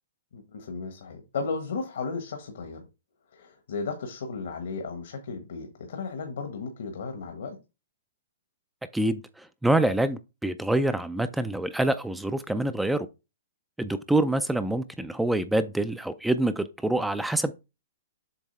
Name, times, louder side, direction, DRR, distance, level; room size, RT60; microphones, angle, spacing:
voice 1, 0.3-2.8 3.3-7.6, left 4 dB, 75° left, 1.3 m, -35 dB
voice 2, 8.9-13.1 13.8-17.5, right 1 dB, 5° right, 0.3 m, -26 dB
7.3 x 3.0 x 4.2 m
hypercardioid pair, 150°, 0 cm